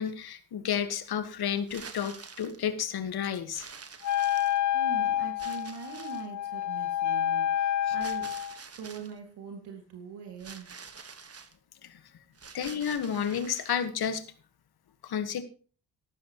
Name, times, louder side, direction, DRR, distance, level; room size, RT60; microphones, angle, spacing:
voice 1, 0.0-3.6 7.9-8.0 11.8-12.0 12.5-14.2 15.0-15.4, left 8 dB, 65° left, 11 dB, 1.6 m, -31 dB
sound 1, 1.6-2.6 3.5-4.8 5.4-6.3 8.0-9.1 10.4-11.5 12.3-13.9, right 5 dB, 35° right, 1.5 m, -47 dB
Wind instrument woodwind instrument, 4.0-8.6, left 11 dB, 45° left, 0.6 m, -28 dB
voice 2, 4.7-8.3 8.8-10.7, right 6 dB, 75° right, 3 dB, 2.4 m, -42 dB
14.0 x 12.0 x 3.1 m, 0.39 s
supercardioid pair, 50°, 41 cm